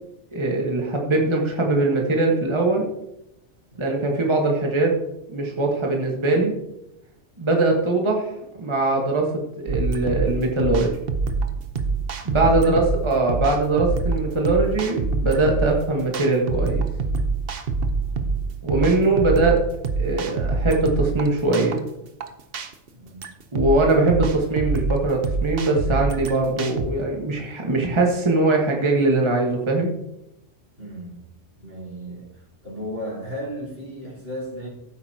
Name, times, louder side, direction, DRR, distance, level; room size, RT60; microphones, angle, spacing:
voice 1, 0.3-2.9 3.8-4.9 5.3-6.5 7.4-9.3 9.6-11.0 12.2-16.8 18.6-19.6 20.0-21.8 23.5-29.9, right 2 dB, 25° right, 0 dB, 1.4 m, -21 dB
sound 1, 9.7-26.9, right 4 dB, 55° right, 1.1 m, -26 dB
voice 2, 12.2-12.8 18.1-18.5 19.0-19.5 20.4-20.6 22.9-23.3 30.8-31.3 31.6-34.7, equal, 75° right, -4 dB, 4.3 m, -36 dB
14.5 x 8.0 x 2.8 m, 0.86 s
omnidirectional pair, 1.2 m